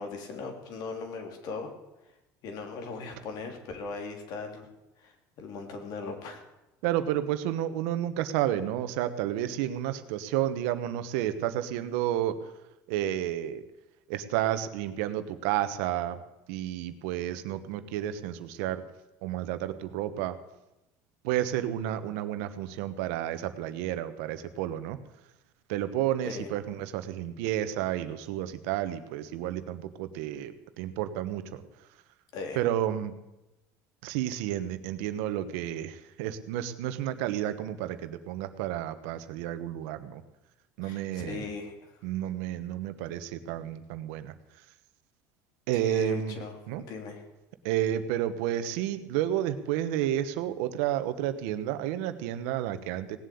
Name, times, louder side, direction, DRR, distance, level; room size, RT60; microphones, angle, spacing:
voice 1, 0.0-1.7 2.4-4.7 5.0-6.4 26.2-26.5 32.3-32.6 40.8-42.0 45.8-46.6 46.9-47.2, left 4 dB, 60° left, 4 dB, 3.2 m, -38 dB
voice 2, 6.8-12.4 12.9-13.6 14.1-16.2 16.5-18.8 19.2-20.4 21.2-25.0 25.7-31.6 32.5-33.1 34.0-40.2 40.8-41.4 42.0-44.3 45.7-46.4 46.7-46.8 47.6-53.2, right 12 dB, 85° right, 11 dB, 1.2 m, -31 dB
18.0 x 7.7 x 8.6 m, 0.96 s
cardioid pair, 125°, 8 cm